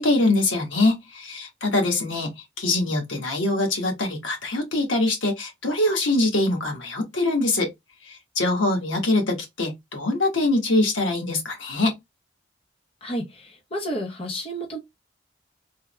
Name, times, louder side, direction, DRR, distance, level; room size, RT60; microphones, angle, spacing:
voice 1, 0.0-7.7 8.0-11.9, left 2 dB, 85° left, 1.3 m, -23 dB
voice 2, 13.0-14.8, equal, 30° left, 0.7 m, -31 dB
3.4 x 2.2 x 3.0 m
head